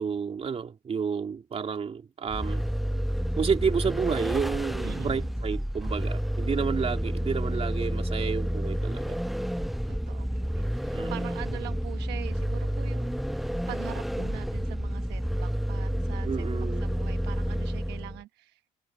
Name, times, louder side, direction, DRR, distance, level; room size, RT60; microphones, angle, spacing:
voice 1, 0.0-2.6 3.4-9.2 10.9-11.1 16.2-17.0, right 6 dB, 35° right, 3.0 m, -30 dB
Vehicle, 2.3-18.2, equal, ahead, 0.3 m, -30 dB
voice 2, 4.8-5.3 9.9-13.1 13.4-18.6, right 16 dB, 85° right, 1.1 m, -43 dB
cardioid pair, 110°, 17 cm